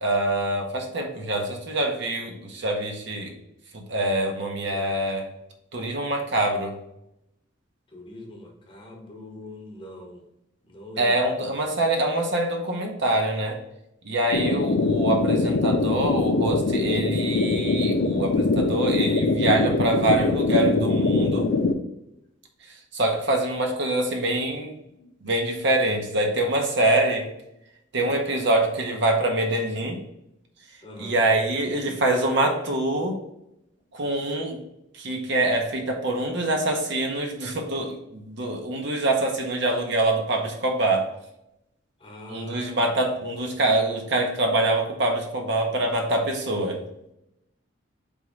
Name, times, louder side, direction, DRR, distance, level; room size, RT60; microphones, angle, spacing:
voice 1, 0.0-3.3 3.7-5.3 5.7-6.8 11.0-13.6 14.0-21.5 22.6-24.8 25.2-27.3 27.9-30.0 31.0-33.2 33.9-34.6 34.9-41.1 42.3-46.8, right 2 dB, 60° right, 2 dB, 0.8 m, -25 dB
voice 2, 7.9-10.2 10.6-11.2 14.4-14.6 25.0-25.2 28.0-28.2 30.8-31.2 42.0-42.8, left 1 dB, 25° left, 1 dB, 0.8 m, -42 dB
sound 1, 14.3-21.7, left 3 dB, 70° left, 0.4 m, -23 dB
3.6 x 3.0 x 4.7 m, 0.83 s
head